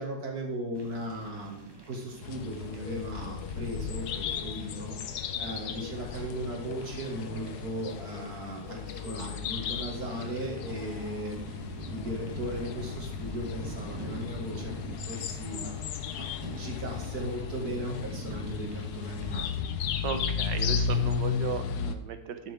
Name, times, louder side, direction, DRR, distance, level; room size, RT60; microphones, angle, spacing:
voice 1, 0.0-11.6 11.9-15.7 16.1-16.2 16.5-19.7, right 1 dB, 60° right, 0 dB, 2.7 m, -37 dB
sound 1, 0.7-19.4, right 2 dB, 15° right, 1.2 m, -46 dB
sound 2, 2.2-22.0, left 7 dB, 70° left, 1.3 m, -35 dB
voice 2, 20.0-22.5, right 6 dB, 85° right, 9 dB, 1.6 m, -36 dB
12.0 x 7.8 x 3.6 m, 0.84 s
omnidirectional pair, 1.9 m